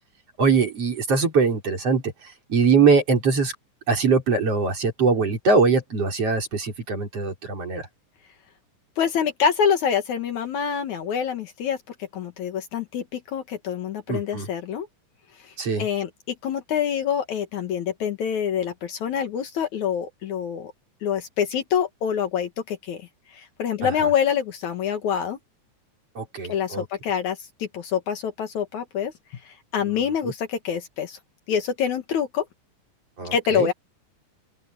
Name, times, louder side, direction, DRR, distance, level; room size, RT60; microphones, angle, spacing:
voice 1, 0.4-3.5 3.9-7.9 14.1-14.5 15.6-15.9 23.8-23.9 26.2-26.9 29.9-30.3 33.2-33.7, right 4 dB, 45° right, 6.2 m, -22 dB
voice 2, 9.0-11.8 12.1-14.9 15.4-15.5 15.8-20.7 21.0-23.1 23.3-25.4 26.5-31.2 31.5-32.5 33.3-33.7, left 8 dB, 70° left, 2.8 m, -26 dB
open air
omnidirectional pair, 3.6 m